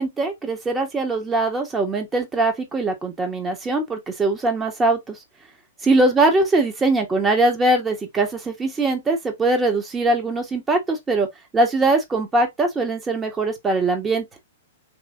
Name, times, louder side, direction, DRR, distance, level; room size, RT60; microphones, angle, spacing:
voice 1, 0.0-5.2 5.8-11.3 11.5-14.3, right 2 dB, 15° right, 1.2 m, -21 dB
3.4 x 3.0 x 2.5 m
hypercardioid pair, 115°, 0 cm